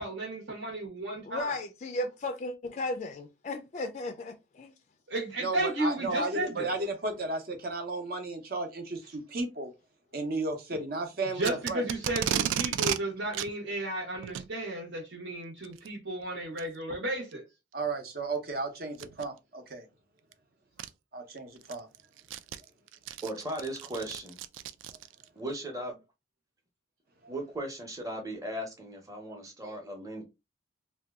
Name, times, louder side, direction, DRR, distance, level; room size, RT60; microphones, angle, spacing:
voice 1, 0.0-1.6 5.1-6.8 11.3-17.4, right 1 dB, 75° right, 1.0 m, -33 dB
voice 2, 1.2-4.7, left 2 dB, 35° left, 0.3 m, -35 dB
voice 3, 5.4-9.7 10.1-11.8 17.7-19.8 21.1-21.9 27.2-27.3, right 2 dB, 50° right, 0.7 m, -34 dB
Packing tape duct tape, 11.4-13.0 13.3-13.5 14.2-14.5 15.6-15.9 16.6-16.7 17.3-17.4 18.9-19.2 20.3-20.4 20.8-20.9 21.4-25.3, right 10 dB, 90° right, 0.3 m, -33 dB
voice 4, 23.2-24.4 25.4-26.0 27.3-30.2, right 1 dB, 20° right, 0.8 m, -37 dB
2.7 x 2.2 x 3.4 m
head